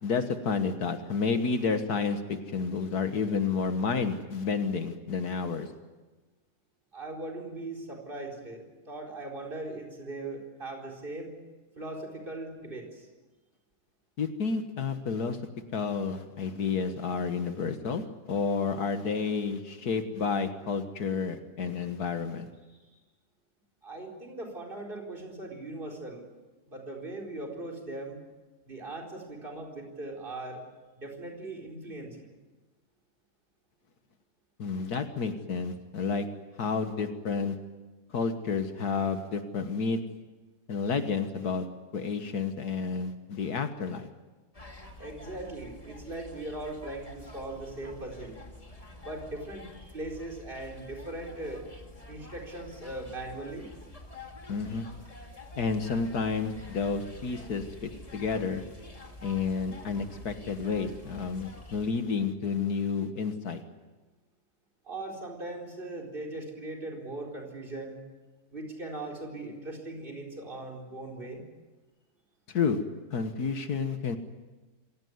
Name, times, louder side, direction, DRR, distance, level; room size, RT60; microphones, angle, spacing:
voice 1, 0.0-5.7 14.2-15.4 15.7-22.5 34.6-36.3 36.6-37.6 38.1-40.0 40.7-41.7 41.9-44.1 54.5-54.9 55.6-58.6 59.2-63.6 72.5-72.8 73.1-74.2, left 5 dB, 75° left, 8 dB, 1.9 m, -30 dB
voice 2, 6.9-11.3 11.8-13.1 22.7-22.8 23.8-26.3 26.7-28.2 28.7-30.6 31.0-32.4 45.0-48.4 49.0-51.6 52.1-53.7 64.8-68.0 68.5-71.4, right 2 dB, 35° right, 0 dB, 4.6 m, -39 dB
sound 1, 44.5-61.9, left 1 dB, 20° left, 2.2 m, -48 dB
26.5 x 17.0 x 9.5 m, 1.2 s
omnidirectional pair, 1.7 m